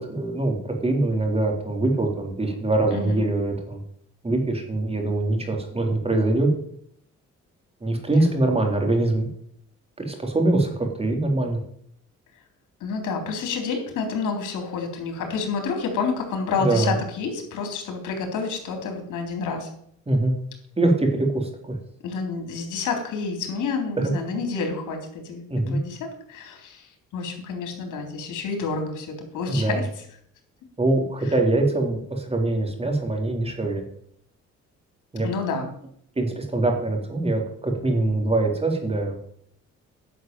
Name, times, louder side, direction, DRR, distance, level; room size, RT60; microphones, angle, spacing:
voice 1, 0.1-3.8 4.2-6.5 7.8-9.3 10.1-11.6 16.6-17.0 20.1-20.3 20.8-21.8 24.0-24.1 25.5-25.8 29.5-29.8 30.8-33.8 35.1-35.3 36.2-39.2, right 2 dB, 20° right, 2 dB, 3.6 m, -23 dB
voice 2, 12.8-19.7 22.0-29.9 35.2-35.7, left 4 dB, 85° left, 4 dB, 3.7 m, -29 dB
11.0 x 6.4 x 9.1 m, 0.67 s
cardioid pair, 90°, 30 cm